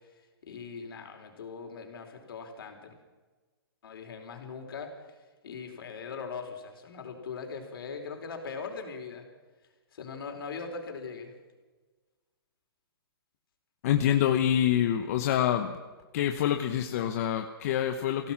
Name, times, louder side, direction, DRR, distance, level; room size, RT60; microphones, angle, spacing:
voice 1, 0.4-2.9 3.8-5.1 5.4-9.3 9.9-11.3, left 5 dB, 65° left, 4 dB, 4.7 m, -40 dB
voice 2, 13.8-15.8 16.1-18.3, left 10 dB, 40° left, 5 dB, 1.1 m, -26 dB
25.5 x 17.0 x 6.0 m, 1.3 s
hypercardioid pair, 165°, 13 cm